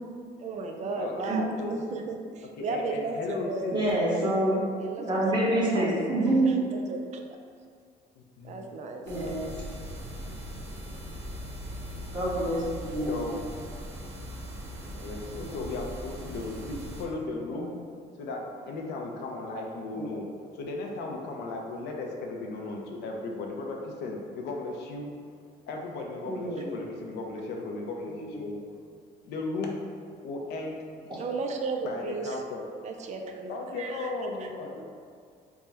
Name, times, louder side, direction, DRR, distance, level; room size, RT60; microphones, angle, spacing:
voice 1, 0.4-3.8 4.8-5.9 6.2-7.3 8.4-9.1 31.1-32.4 32.8-34.1 34.4-34.5, right 3 dB, 45° right, 3 dB, 0.4 m, -35 dB
voice 2, 1.0-1.8 2.6-3.8 8.2-8.7 10.6-10.7 12.0-12.1 13.1-13.5 14.8-17.7 18.2-20.3 20.5-25.2 25.7-28.6 29.2-29.8 30.2-30.8 31.8-32.6 33.5-34.8, left 3 dB, 80° left, 0 dB, 0.6 m, -36 dB
voice 3, 3.7-4.6 5.0-6.6 9.1-9.5 12.1-13.3 15.4-15.5 19.9-20.0 26.2-26.7 28.0-28.2, right 1 dB, 25° right, -8 dB, 1.2 m, -27 dB
sound 1, 9.0-17.0, equal, 85° right, 0.8 m, -40 dB
3.5 x 2.2 x 4.0 m, 2.1 s
cardioid pair, 110°, 17 cm